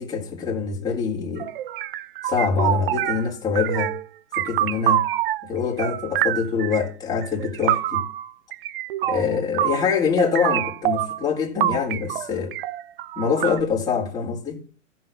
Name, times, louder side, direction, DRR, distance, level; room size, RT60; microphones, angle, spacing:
voice 1, 0.0-1.5 2.2-3.9 4.3-5.1 5.4-8.0 9.0-12.5 13.2-14.6, left 6 dB, 10° left, 4.0 m, -24 dB
sound 1, 1.4-3.3 3.6-4.1 4.3-5.5 5.8-6.8 7.2-9.9 10.2-11.3 11.6-13.6, right 13 dB, 45° right, 0.7 m, -26 dB
14.5 x 6.1 x 9.4 m
hypercardioid pair, 130°, 40 cm